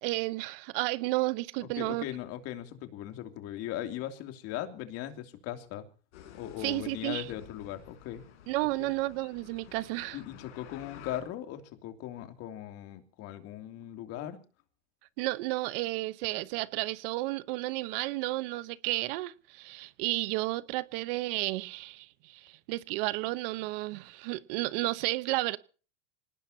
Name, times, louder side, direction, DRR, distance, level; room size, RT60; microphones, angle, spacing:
voice 1, 0.0-2.0 6.6-7.2 8.5-10.2 15.2-25.6, right 20 dB, 50° right, 1.0 m, -32 dB
voice 2, 1.8-5.8 6.3-8.2 8.8-8.9 10.1-14.4, left 12 dB, 40° left, 2.9 m, -39 dB
sound 1, 6.1-11.2, left 9 dB, 70° left, 6.2 m, -51 dB
25.5 x 19.0 x 2.8 m
supercardioid pair, 145°, 36 cm